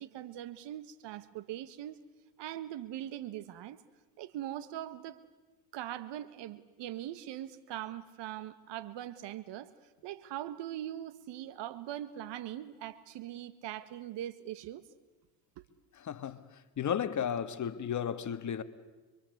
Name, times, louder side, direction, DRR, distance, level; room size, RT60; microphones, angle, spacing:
voice 1, 0.0-2.0 2.4-3.8 4.2-5.2 5.7-9.7 10.0-14.8 15.6-15.7, right 12 dB, 60° right, 1.7 m, -41 dB
voice 2, 16.0-16.4 16.8-18.6, left 8 dB, 35° left, 1.6 m, -33 dB
26.5 x 23.5 x 8.1 m
supercardioid pair, 100°, 49 cm